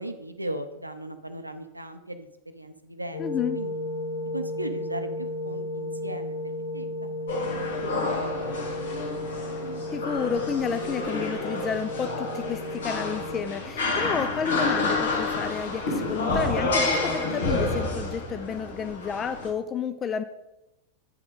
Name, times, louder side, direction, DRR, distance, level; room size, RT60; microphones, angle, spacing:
voice 1, 0.0-2.3 2.5-3.2 3.5-3.7 4.3-6.4 6.7-6.9 7.4-7.8 8.2-8.8, right 1 dB, 85° right, 8 dB, 0.5 m, -37 dB
sound 1, 3.1-13.5, left 1 dB, 45° left, 1.2 m, -34 dB
voice 2, 3.2-3.6 9.9-20.2, left 7 dB, 25° left, 10 dB, 0.4 m, -31 dB
sound 2, 7.3-19.5, left 2 dB, 65° left, 1.7 m, -29 dB
8.5 x 5.9 x 4.0 m, 0.93 s
figure-of-eight pair, 90°, 0 cm